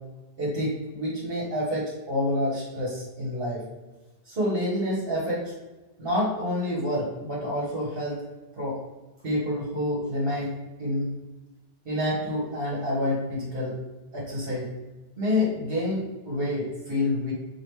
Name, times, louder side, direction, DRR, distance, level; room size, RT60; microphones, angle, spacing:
voice 1, 0.4-3.6 4.3-5.5 6.0-8.2 8.6-8.8 9.2-11.1 11.8-13.7 14.1-14.7 15.2-17.3, left 1 dB, 60° right, -6 dB, 1.3 m, -28 dB
5.0 x 2.6 x 3.1 m, 1.2 s
omnidirectional pair, 1.1 m